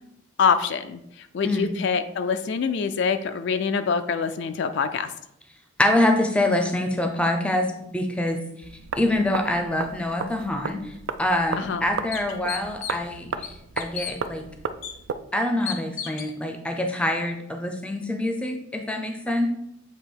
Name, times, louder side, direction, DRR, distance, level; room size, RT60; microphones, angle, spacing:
voice 1, 0.4-5.1 11.6-11.8, left 6 dB, 55° left, 8 dB, 0.3 m, -25 dB
voice 2, 5.8-8.4 8.9-10.9 11.2-14.4 15.3-19.5, left 1 dB, 5° left, 5 dB, 0.5 m, -25 dB
sound 1, 8.6-15.2, right 5 dB, 65° right, 0.4 m, -35 dB
sound 2, 11.1-11.2 11.7-11.8 12.1-13.1 13.4-14.1 14.8-14.9 15.7-16.3, left 8 dB, 75° left, 0.8 m, -34 dB
8.0 x 2.9 x 4.5 m, 0.79 s
head